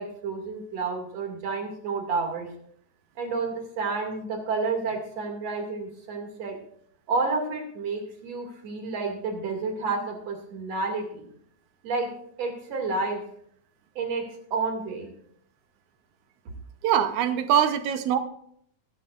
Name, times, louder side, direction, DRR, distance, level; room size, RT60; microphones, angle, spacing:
voice 1, 0.0-2.5 3.2-6.6 7.1-11.3 11.8-12.1 12.4-13.2 14.0-15.1, right 4 dB, 60° right, 2 dB, 3.4 m, -30 dB
voice 2, 16.8-18.2, right 9 dB, 85° right, 9 dB, 2.3 m, -23 dB
21.0 x 10.5 x 2.5 m, 0.65 s
omnidirectional pair, 3.3 m